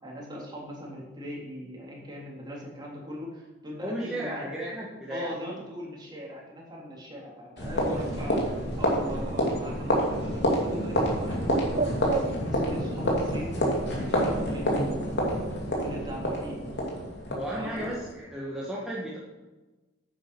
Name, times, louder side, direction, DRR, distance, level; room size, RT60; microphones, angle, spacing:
voice 1, 0.0-4.5 5.1-8.5 8.8-13.5 13.9-16.8 17.5-17.8, equal, 20° right, -3 dB, 3.5 m, -39 dB
voice 2, 3.8-5.3 14.0-14.2 17.3-19.2, right 1 dB, 5° right, -6 dB, 1.7 m, -34 dB
sound 1, 7.6-18.1, equal, 60° left, 2.9 m, -28 dB
Bird, 8.1-13.6, right 4 dB, 40° right, 0.6 m, -37 dB
9.8 x 8.7 x 6.1 m, 1.2 s
head